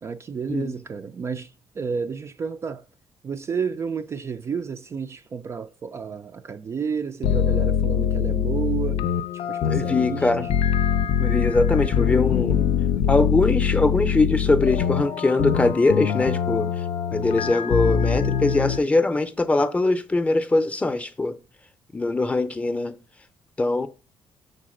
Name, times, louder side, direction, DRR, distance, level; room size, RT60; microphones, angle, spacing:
voice 1, 0.0-2.8 3.2-9.1 9.3-10.5, right 6 dB, 30° right, 0.4 m, -31 dB
sound 1, 7.2-18.8, left 8 dB, 85° left, 0.5 m, -23 dB
voice 2, 9.7-10.5 11.2-12.7 13.1-16.7 17.1-21.3 21.9-23.0 23.6-23.9, left 2 dB, 15° left, 0.6 m, -22 dB
6.5 x 3.9 x 6.4 m
cardioid pair, 150°, 9 cm